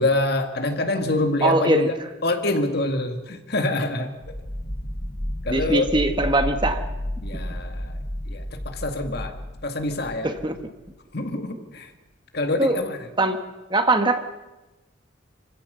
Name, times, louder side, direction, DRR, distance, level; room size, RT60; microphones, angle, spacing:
voice 1, 0.0-2.0 2.2-4.1 5.4-5.9 7.2-8.0 8.3-9.4 9.6-10.3 11.1-11.9 12.3-13.0, left 2 dB, 55° left, 5 dB, 2.1 m, -25 dB
voice 2, 1.4-1.9 5.5-6.8 10.2-10.6 12.6-12.8 13.2-13.4 13.7-14.2, right 2 dB, 25° right, 7 dB, 1.3 m, -21 dB
sound 1, 4.2-10.9, equal, 20° left, 1.8 m, -32 dB
26.5 x 16.0 x 6.9 m, 1.1 s
head